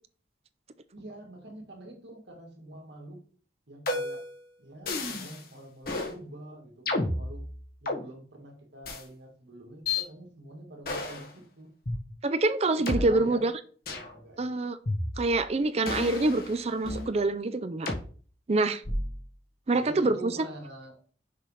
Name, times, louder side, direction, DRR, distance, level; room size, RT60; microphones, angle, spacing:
voice 1, 0.9-3.2 3.7-4.2 4.6-7.5 7.8-11.7 12.8-13.5 13.9-14.6 19.7-21.0, right 1 dB, 75° right, 0 dB, 2.2 m, -45 dB
sound 1, 3.9-4.3 4.9-5.4 5.8-6.1 6.9-8.0 8.8-9.0 9.9-10.0 10.8-11.3 11.9-12.0 12.9-13.0 13.9-14.1 14.9-15.4 15.9-17.1 17.9-18.0 18.8-19.2, left 2 dB, 55° left, 1.4 m, -32 dB
voice 2, 12.2-13.5 14.4-14.8 15.2-17.9 18.5-18.8 19.7-20.3, right 2 dB, 35° right, 12 dB, 0.4 m, -26 dB
6.5 x 3.3 x 5.6 m, 0.43 s
head